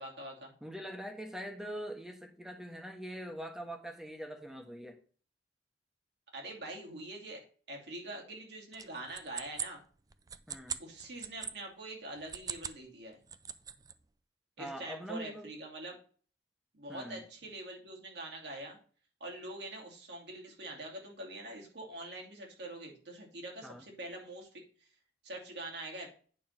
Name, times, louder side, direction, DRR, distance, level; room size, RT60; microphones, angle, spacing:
voice 1, 0.0-0.5 6.3-7.4 7.7-9.8 10.8-13.2 14.6-16.0 16.7-18.8 19.2-24.5 24.8-24.9 25.2-26.1, right 1 dB, 70° right, -1 dB, 2.6 m, -44 dB
voice 2, 0.6-5.0 10.5-10.8 14.6-15.5 16.9-17.2 23.6-23.9, equal, 5° right, 3 dB, 1.2 m, -43 dB
sound 1, 8.7-11.5 12.2-12.8 13.1-13.9, right 7 dB, 20° right, 0.4 m, -41 dB
8.9 x 3.7 x 5.8 m, 0.42 s
head